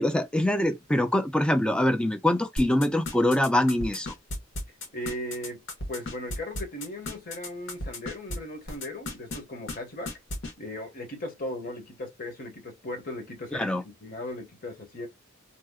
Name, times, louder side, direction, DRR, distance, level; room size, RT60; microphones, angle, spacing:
voice 1, 0.0-4.1 13.5-13.8, left 1 dB, 5° left, 0.3 m, -24 dB
sound 1, 2.6-8.4 8.7-9.4 9.7-9.8 10.1-10.5, left 1 dB, 65° left, 1.1 m, -34 dB
voice 2, 4.9-5.6 5.9-10.1 10.6-15.1, left 1 dB, 45° left, 0.9 m, -37 dB
2.7 x 2.1 x 3.5 m
head